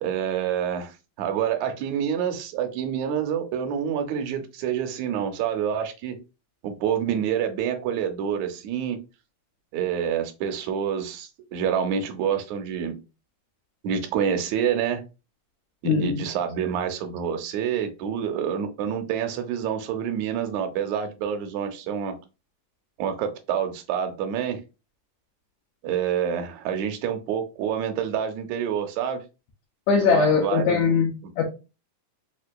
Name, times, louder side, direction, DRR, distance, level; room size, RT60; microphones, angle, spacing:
voice 1, 0.0-6.2 6.6-9.0 9.7-13.0 13.8-15.0 15.8-22.2 23.0-24.6 25.8-29.2 30.0-30.8, right 8 dB, 80° right, 1.8 m, -27 dB
voice 2, 15.8-16.2 29.9-31.4, left 5 dB, 75° left, 1.9 m, -21 dB
5.1 x 2.4 x 2.2 m
omnidirectional pair, 3.6 m